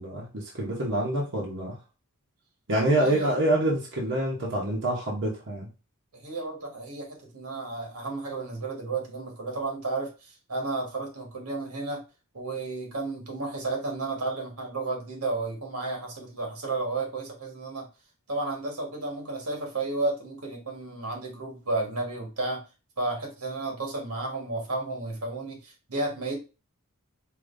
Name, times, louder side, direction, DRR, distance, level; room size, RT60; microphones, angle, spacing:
voice 1, 0.0-1.8 2.7-5.7, right 1 dB, 55° right, -3 dB, 1.0 m, -26 dB
voice 2, 2.8-3.4 6.1-12.0 12.3-17.9 18.3-22.6 23.0-26.4, right 2 dB, 85° right, 1 dB, 1.5 m, -32 dB
4.9 x 2.8 x 2.6 m, 0.31 s
head